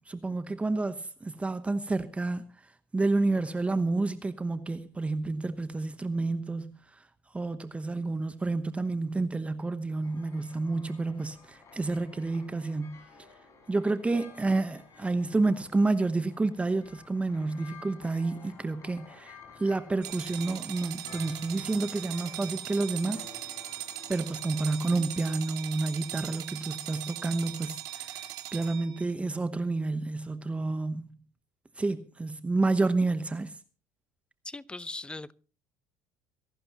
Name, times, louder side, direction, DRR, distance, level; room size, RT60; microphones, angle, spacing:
voice 1, 0.1-2.4 2.9-6.8 7.3-13.0 13.7-23.2 24.1-28.1 28.5-31.1 31.8-33.5, right 3 dB, 15° right, 1.0 m, -29 dB
sound 1, 10.0-25.0, left 5 dB, 45° left, 5.5 m, -53 dB
sound 2, 20.0-29.1, right 12 dB, 65° right, 2.0 m, -39 dB
voice 2, 34.4-35.3, left 2 dB, 15° left, 0.8 m, -39 dB
25.5 x 11.5 x 3.0 m
hypercardioid pair, 75°, 7 cm